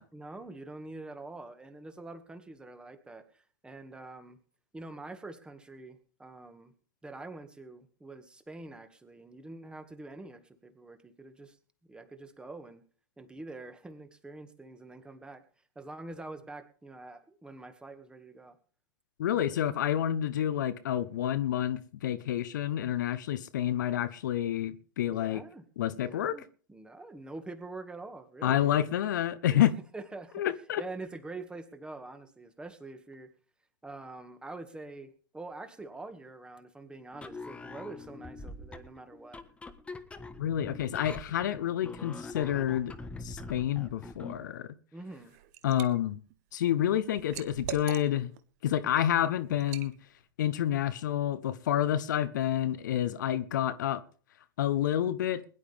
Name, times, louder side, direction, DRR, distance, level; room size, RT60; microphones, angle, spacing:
voice 1, 0.1-4.4 4.7-6.7 7.0-11.6 11.9-12.8 13.2-15.4 15.8-18.6 25.1-25.7 25.9-28.9 29.4-29.7 29.9-30.4 30.8-33.3 33.8-39.4 44.9-45.4, right 2 dB, 10° right, 1.9 m, -45 dB
voice 2, 19.2-25.4 25.8-26.4 28.4-29.7 30.3-30.8 40.4-42.9 43.2-44.7 45.6-46.2 46.5-48.3 48.6-49.9 50.4-54.0 54.6-55.4, left 11 dB, 60° left, 1.0 m, -29 dB
sound 1, 37.1-44.5, left 3 dB, 10° left, 1.4 m, -44 dB
Liquid, 45.1-45.9 46.3-48.4 48.8-49.0 49.6-49.9, right 13 dB, 50° right, 1.3 m, -42 dB
21.5 x 11.5 x 3.5 m
figure-of-eight pair, 100°, 11 cm